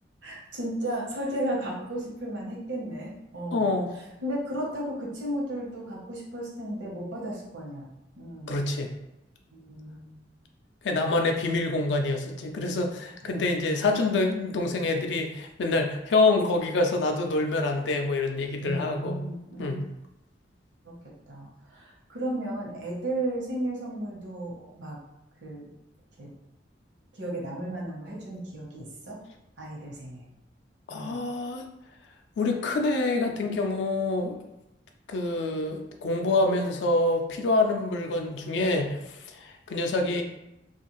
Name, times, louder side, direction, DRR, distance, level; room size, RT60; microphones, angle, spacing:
voice 1, 0.2-3.7 3.9-7.9 8.1-8.6 9.5-10.2 13.2-13.4 18.6-19.9 20.8-20.9 21.3-25.0 25.4-25.7 26.2-26.3 27.1-29.2 29.6-30.3 30.9-31.2, right 1 dB, 85° right, -3 dB, 0.9 m, -34 dB
voice 2, 3.5-3.9 8.5-8.9 10.8-19.2 19.6-19.8 30.9-31.6 32.4-34.4 35.1-40.2, left 2 dB, 75° left, 4 dB, 0.4 m, -26 dB
2.6 x 2.4 x 3.0 m, 0.92 s
head